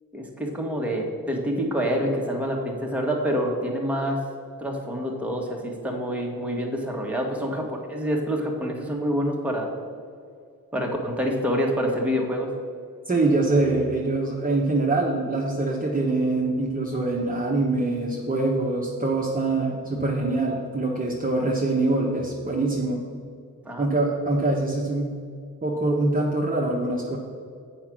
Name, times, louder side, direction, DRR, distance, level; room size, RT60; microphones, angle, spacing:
voice 1, 0.1-4.2 4.6-9.7 10.7-12.5 23.7-23.9, equal, 5° right, -1 dB, 1.6 m, -27 dB
voice 2, 13.0-23.0 23.8-25.1 25.6-27.2, right 2 dB, 25° right, -4 dB, 1.1 m, -24 dB
7.9 x 5.0 x 6.2 m, 2.3 s
cardioid pair, 75°, 35 cm